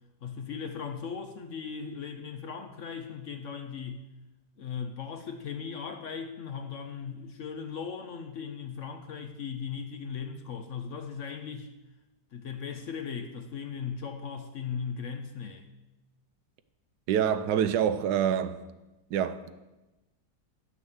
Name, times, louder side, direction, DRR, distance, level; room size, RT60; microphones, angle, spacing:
voice 1, 0.2-4.1 4.6-11.7 12.3-15.7, left 6 dB, 60° left, 0.9 m, -38 dB
voice 2, 17.1-18.6 19.1-19.5, right 9 dB, 75° right, 1.2 m, -26 dB
10.5 x 6.5 x 7.1 m
omnidirectional pair, 1.8 m